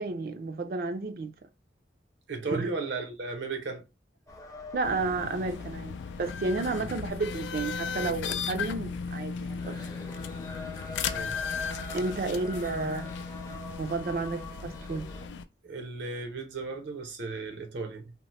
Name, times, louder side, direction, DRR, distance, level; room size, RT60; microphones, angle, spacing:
voice 1, 0.0-1.3 2.5-2.7 4.7-10.0 11.9-13.1 13.8-15.1, right 3 dB, 55° right, 0.4 m, -32 dB
voice 2, 2.3-3.8 6.8-6.9 11.1-11.3 15.6-18.1, right 3 dB, 90° right, 0.7 m, -35 dB
sound 1, 4.3-15.3, left 2 dB, 20° left, 0.5 m, -45 dB
sound 2, 4.8-15.4, left 6 dB, 90° left, 0.3 m, -36 dB
2.9 x 2.0 x 3.0 m
head